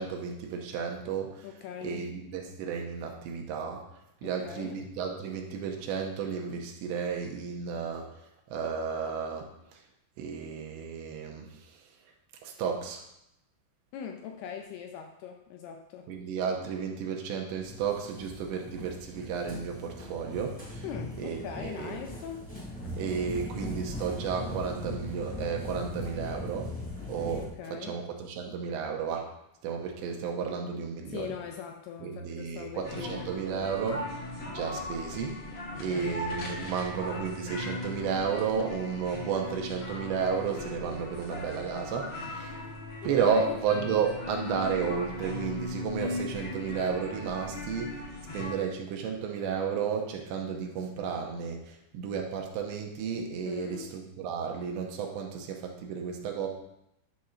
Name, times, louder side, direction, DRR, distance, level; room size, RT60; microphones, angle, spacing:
voice 1, 0.0-1.5 1.8-3.8 4.2-8.1 8.5-9.5 10.2-11.5 12.4-13.0 16.1-20.8 21.2-22.0 23.0-26.7 27.1-27.4 27.7-29.3 29.6-31.3 32.0-34.1 34.5-35.4 35.8-42.6 43.0-48.0 48.3-56.5, right 6 dB, 80° right, 2 dB, 3.0 m, -32 dB
voice 2, 1.4-2.0 4.2-4.9 13.9-16.1 20.8-22.5 27.3-28.0 31.1-33.3 35.7-36.2 43.0-43.6 53.5-53.9, left 8 dB, 85° left, 4 dB, 2.3 m, -41 dB
sound 1, 17.6-27.5, left 1 dB, 5° left, 1.0 m, -39 dB
sound 2, 32.8-48.5, left 1 dB, 65° left, 1.2 m, -38 dB
10.5 x 6.3 x 4.3 m, 0.81 s
omnidirectional pair, 5.3 m